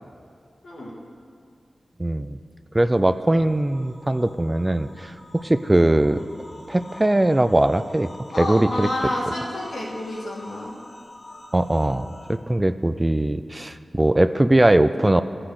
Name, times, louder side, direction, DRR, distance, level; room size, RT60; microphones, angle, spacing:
voice 1, 2.0-2.4 2.7-6.2 6.7-8.1 8.4-8.9 11.5-15.2, right 1 dB, 20° right, 11 dB, 0.4 m, -20 dB
sound 1, 2.9-12.4, left 1 dB, 45° left, 1.3 m, -46 dB
voice 2, 8.3-10.7, left 1 dB, 80° left, -4 dB, 2.1 m, -29 dB
12.5 x 5.8 x 6.5 m, 2.2 s
cardioid pair, 55°, 0 cm